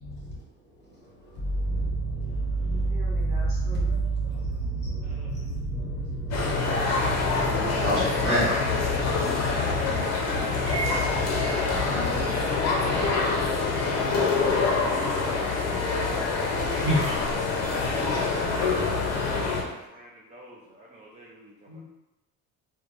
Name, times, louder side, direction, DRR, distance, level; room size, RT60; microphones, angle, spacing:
voice 1, 0.0-13.9, right 1 dB, 30° left, -5 dB, 1.0 m, -31 dB
voice 2, 2.6-3.9 6.9-7.0 7.5-8.5 14.1-14.3 15.1-15.5 16.7-17.2 21.7-21.8, equal, 90° right, -7 dB, 1.0 m, -31 dB
sound 1, 6.3-19.6, left 4 dB, 45° left, 0.7 m, -26 dB
sound 2, 9.1-16.2 16.9-19.8, right 3 dB, 50° right, 1.1 m, -42 dB
voice 3, 19.5-21.8, right 1 dB, 20° right, -4 dB, 0.4 m, -52 dB
2.9 x 2.3 x 2.5 m, 0.97 s
supercardioid pair, 75°, 37 cm